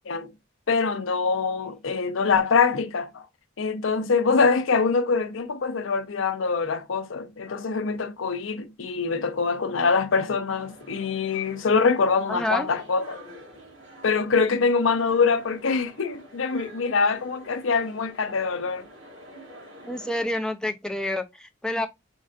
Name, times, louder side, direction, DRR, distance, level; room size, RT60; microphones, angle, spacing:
voice 1, 0.7-3.3 3.6-13.2 14.0-18.8, left 4 dB, 80° left, 0.6 m, -24 dB
sound 1, 10.5-20.3, right 1 dB, 75° right, 2.7 m, -48 dB
voice 2, 12.3-12.7 19.9-21.9, left 1 dB, 5° left, 0.4 m, -28 dB
5.3 x 2.4 x 2.4 m
head